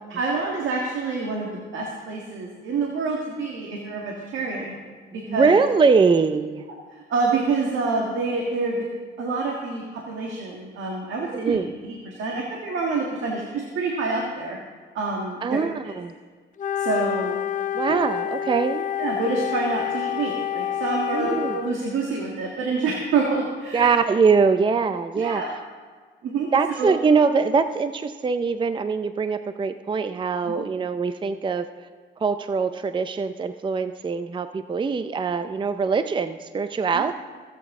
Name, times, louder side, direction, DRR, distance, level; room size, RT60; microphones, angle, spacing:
voice 1, 0.1-4.8 5.1-5.6 6.9-8.8 9.2-11.6 11.8-14.6 15.0-15.6 16.8-17.4 17.9-18.0 19.0-23.9 25.2-25.5 26.2-26.9 30.4-30.6 36.9-37.1, right 3 dB, 75° right, -1 dB, 1.7 m, -27 dB
voice 2, 5.3-6.6 11.3-11.7 15.4-16.1 17.7-18.8 21.1-21.5 23.7-25.4 26.5-31.7 32.2-37.1, right 5 dB, 25° right, 10 dB, 0.5 m, -22 dB
Wind instrument woodwind instrument, 16.6-21.8, left 10 dB, 40° left, 0.5 m, -28 dB
23.0 x 8.3 x 3.7 m, 1.5 s
cardioid pair, 90°, 20 cm